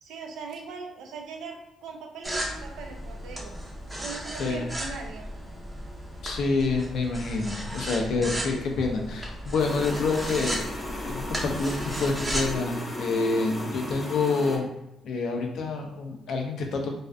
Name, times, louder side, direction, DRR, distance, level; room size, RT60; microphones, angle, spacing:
voice 1, 0.0-3.5 3.9-5.3, right 5 dB, 85° right, 3 dB, 0.4 m, -40 dB
sound 1, 2.2-12.6, equal, 15° right, 0.6 m, -35 dB
voice 2, 6.2-10.6 11.0-14.7 15.0-17.0, left 3 dB, 70° left, 2 dB, 0.5 m, -27 dB
sound 2, 9.6-14.6, left 1 dB, 25° left, 0.7 m, -36 dB
2.5 x 2.4 x 2.2 m, 0.88 s
cardioid pair, 90°, 0 cm